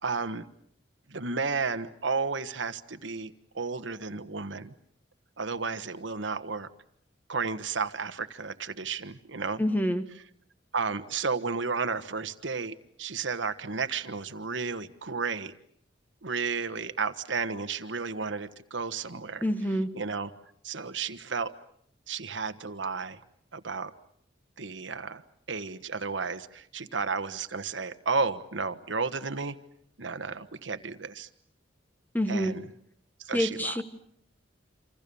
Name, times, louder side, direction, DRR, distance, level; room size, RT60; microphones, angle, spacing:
voice 1, 0.0-0.5 1.1-4.7 5.4-6.7 7.3-9.6 10.7-15.5 16.2-19.5 19.9-20.3 20.6-21.5 22.1-23.2 23.5-23.9 24.6-25.2 25.5-29.5 30.0-31.3 32.3-32.7 33.2-33.8, right 4 dB, 80° right, 11 dB, 1.3 m, -32 dB
voice 2, 9.6-10.0 19.4-19.9 32.1-32.5 33.3-33.8, equal, 10° left, 9 dB, 1.5 m, -27 dB
28.0 x 27.0 x 7.0 m, 0.67 s
head